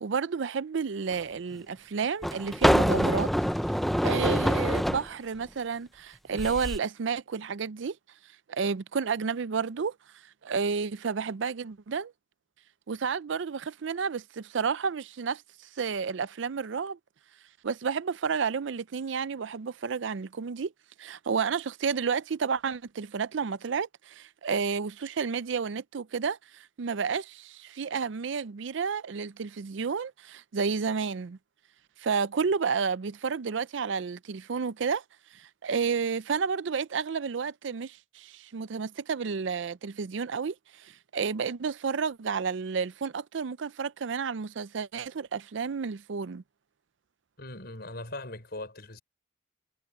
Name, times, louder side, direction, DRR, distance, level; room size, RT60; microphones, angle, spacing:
voice 1, 0.0-3.3 4.0-8.0 8.5-9.9 10.4-12.1 12.9-15.4 15.8-17.0 17.6-20.7 21.0-31.4 32.0-35.0 35.3-46.4, right 5 dB, 65° right, 0.5 m, -31 dB
sound 1, 1.1-1.2 2.2-5.1 6.3-6.8, equal, ahead, 0.6 m, -25 dB
voice 2, 47.4-49.0, left 2 dB, 55° left, 5.8 m, -40 dB
head